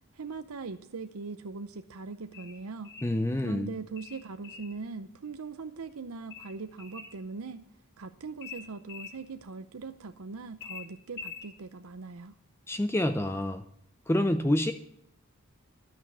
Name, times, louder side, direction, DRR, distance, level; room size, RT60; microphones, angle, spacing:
voice 1, 0.1-2.9 3.4-7.7 8.0-12.4, right 4 dB, 90° right, 9 dB, 0.7 m, -40 dB
sound 1, 2.3-3.2 4.0-4.8 6.3-7.2 8.4-9.2 10.6-11.5, left 6 dB, 55° left, 2.3 m, -44 dB
voice 2, 3.0-3.7 12.7-13.6 14.1-14.7, left 1 dB, 10° left, 9 dB, 0.5 m, -27 dB
12.5 x 6.3 x 9.1 m, 0.71 s
head